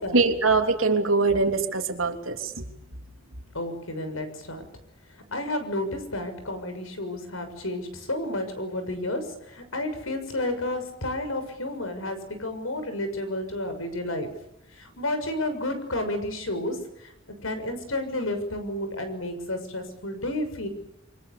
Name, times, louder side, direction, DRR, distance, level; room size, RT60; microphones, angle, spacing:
voice 1, 0.1-2.6, right 3 dB, 80° right, 5 dB, 3.3 m, -23 dB
voice 2, 3.5-4.6 5.3-14.3 14.8-17.1 17.4-20.7, left 1 dB, 90° left, 8 dB, 6.6 m, -31 dB
28.5 x 24.5 x 7.0 m, 0.81 s
head